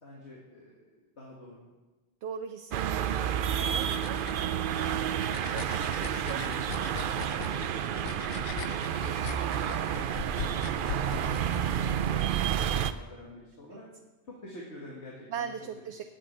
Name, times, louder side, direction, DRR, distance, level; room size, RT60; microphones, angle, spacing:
voice 1, 0.0-1.7 5.0-5.4 5.9-8.2 8.5-13.9 14.2-15.5, left 1 dB, 80° left, -4 dB, 2.2 m, -48 dB
voice 2, 2.2-3.8 13.7-13.8 15.3-16.0, right 7 dB, 90° right, 5 dB, 1.0 m, -39 dB
sound 1, 2.7-12.9, right 9 dB, 60° right, 0.6 m, -30 dB
sound 2, 3.3-12.3, left 7 dB, 60° left, 0.8 m, -41 dB
8.0 x 7.7 x 8.8 m, 1.1 s
omnidirectional pair, 1.1 m